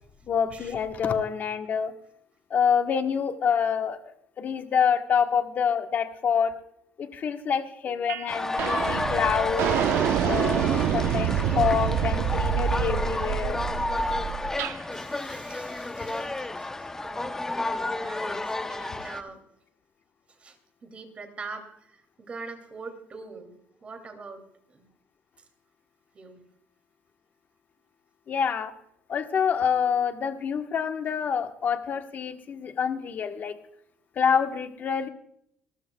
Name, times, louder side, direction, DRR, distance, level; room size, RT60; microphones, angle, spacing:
voice 1, 0.3-1.9 2.5-6.5 7.0-9.8 10.2-13.6 28.3-28.7 29.1-33.6 34.2-35.1, left 7 dB, 45° left, 6 dB, 1.2 m, -27 dB
sound 1, 8.1-8.3 8.6-14.8, right 9 dB, 75° right, 0.8 m, -27 dB
sound 2, 8.3-19.2, left 2 dB, 10° left, 0.7 m, -31 dB
voice 2, 14.9-19.4 20.3-24.9 25.4-25.5 26.1-26.5, right 4 dB, 30° right, 7 dB, 2.6 m, -44 dB
26.0 x 14.0 x 2.3 m, 0.73 s
cardioid pair, 135°, 4 cm